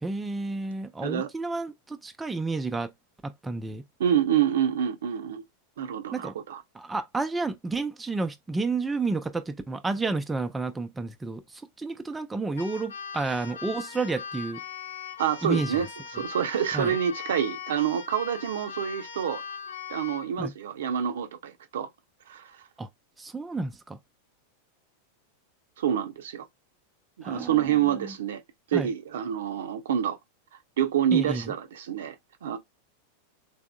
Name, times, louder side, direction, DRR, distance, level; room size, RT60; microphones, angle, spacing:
voice 1, 0.0-2.9 3.2-3.8 6.1-6.3 6.7-14.6 15.4-15.7 16.7-16.9 20.4-20.5 22.8-22.9 23.2-24.0 27.2-28.1 28.7-28.9 31.1-31.5, right 3 dB, 10° right, 0.4 m, -31 dB
voice 2, 4.0-5.4 5.8-6.6 15.2-15.9 16.1-19.4 19.9-21.9 22.3-22.6 25.8-26.5 27.2-28.4 28.7-30.2 30.8-32.2 32.4-32.6, right 9 dB, 60° right, 0.6 m, -27 dB
Keyboard (musical), 12.5-20.3, left 7 dB, 65° left, 0.6 m, -39 dB
3.5 x 3.4 x 2.2 m
figure-of-eight pair, 90°, 0 cm